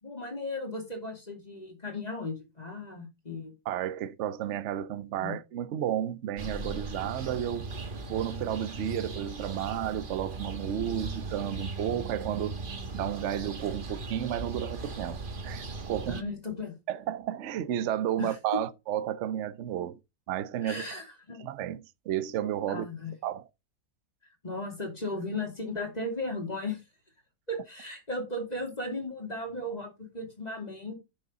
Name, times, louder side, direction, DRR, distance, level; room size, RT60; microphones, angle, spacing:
voice 1, 0.0-3.5 5.2-5.3 16.1-16.8 18.2-18.6 20.6-21.4 22.7-23.1 24.4-26.8 27.5-30.9, left 2 dB, 25° left, 2.6 m, -36 dB
voice 2, 3.7-7.7 8.1-12.6 12.9-15.2 15.4-16.2 16.9-20.0 20.3-20.8 21.4-22.8 23.2-23.5, right 11 dB, 55° right, 0.8 m, -32 dB
sound 1, 6.4-16.2, right 3 dB, 35° right, 1.1 m, -38 dB
10.0 x 6.4 x 3.8 m
omnidirectional pair, 1.8 m